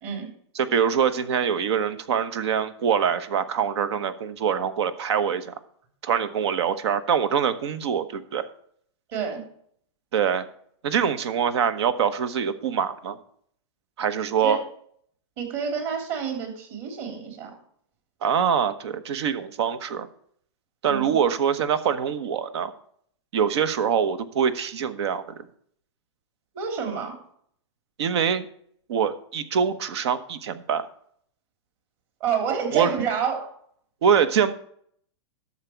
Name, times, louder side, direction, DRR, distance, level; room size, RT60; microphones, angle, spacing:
voice 1, 0.5-5.5 6.0-8.5 10.1-10.5 10.8-13.2 14.0-14.6 18.2-20.1 20.8-22.7 23.3-25.3 28.0-28.5 28.9-30.8 32.7-32.9 34.0-34.5, right 7 dB, 65° right, 13 dB, 1.1 m, -24 dB
voice 2, 9.1-9.4 14.4-14.6 15.4-17.5 20.9-21.2 26.5-27.1 32.2-33.5, right 7 dB, 45° right, 3 dB, 3.5 m, -28 dB
12.0 x 7.3 x 4.6 m, 0.64 s
hypercardioid pair, 145°, 15 cm